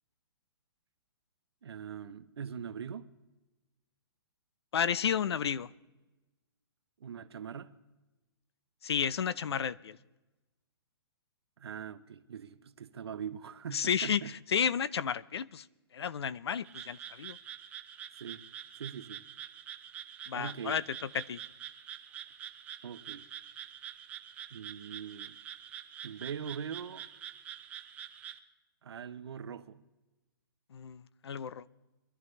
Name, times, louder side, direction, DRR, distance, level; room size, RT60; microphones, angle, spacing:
voice 1, 1.6-3.1 7.0-7.7 11.6-14.3 18.2-18.4 18.8-19.2 20.3-20.8 22.8-23.3 24.5-25.4 26.0-27.1 28.8-29.8, right 7 dB, 80° right, 0.9 m, -42 dB
voice 2, 4.7-5.7 8.8-10.0 13.7-15.6 15.9-17.4 20.3-21.4 30.7-31.6, left 7 dB, 85° left, 0.6 m, -32 dB
Frog, 16.6-28.4, right 10 dB, 10° right, 0.5 m, -46 dB
23.0 x 12.5 x 3.3 m
hypercardioid pair, 165°, 13 cm